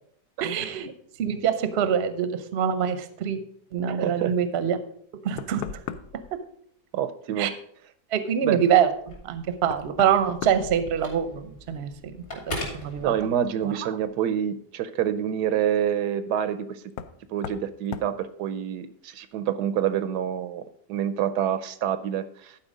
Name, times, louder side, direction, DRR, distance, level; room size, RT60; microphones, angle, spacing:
voice 1, 0.4-0.9 1.2-3.4 3.7-4.8 5.2-5.6 7.4-7.5 8.1-11.9 12.7-13.1 13.6-13.9, right 8 dB, 50° right, 11 dB, 0.8 m, -25 dB
voice 2, 3.9-4.3 6.9-7.5 8.4-8.6 13.0-16.8 17.3-22.6, right 9 dB, 80° right, 13 dB, 1.1 m, -27 dB
Knock, 4.9-5.0 5.4-6.3 8.8-8.9 9.7-11.5 11.8-12.4 14.1-14.2 16.9-17.2 17.4-17.7 17.9-18.2, left 8 dB, 70° left, 1.0 m, -38 dB
Telephone, 8.9-13.7, left 1 dB, 45° left, 2.9 m, -40 dB
11.5 x 4.7 x 5.0 m, 0.64 s
omnidirectional pair, 1.8 m